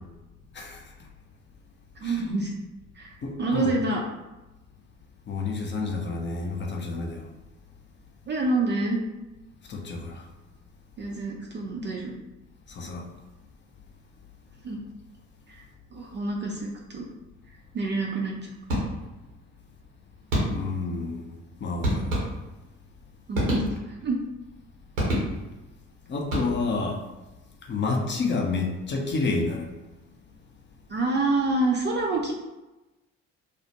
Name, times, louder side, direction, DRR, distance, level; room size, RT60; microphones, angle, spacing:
voice 1, 2.0-2.5 2.9-4.0 8.3-9.0 11.0-12.1 14.6-14.8 15.5-15.6 15.9-17.1 17.7-18.5 23.3-24.2 30.9-32.3, right 2 dB, 30° right, -1 dB, 0.4 m, -27 dB
voice 2, 3.2-3.7 5.3-7.2 9.7-10.2 12.7-13.0 20.5-21.3 21.6-22.1 26.1-27.0 27.7-29.7, left 3 dB, 30° left, 1 dB, 0.6 m, -29 dB
sound 1, 18.7-19.3 20.3-20.9 21.8-22.7 23.3-24.1 25.0-25.7 26.2-26.9, equal, 90° right, 0.8 m, -28 dB
2.3 x 2.1 x 2.7 m, 1.0 s
hypercardioid pair, 50°, 38 cm